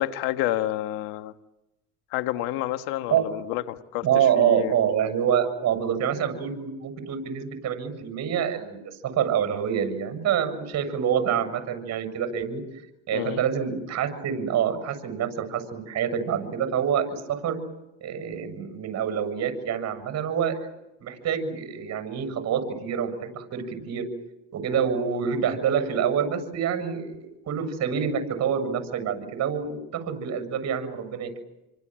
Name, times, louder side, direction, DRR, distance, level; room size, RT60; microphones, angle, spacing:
voice 1, 0.0-1.3 2.1-4.7 13.1-13.4, left 14 dB, 80° left, 9 dB, 1.7 m, -29 dB
voice 2, 4.0-12.6 13.1-17.6 18.0-20.6 21.0-24.1 24.5-31.3, right 8 dB, 50° right, 8 dB, 7.3 m, -26 dB
28.5 x 25.0 x 7.7 m, 0.94 s
supercardioid pair, 105°, 35 cm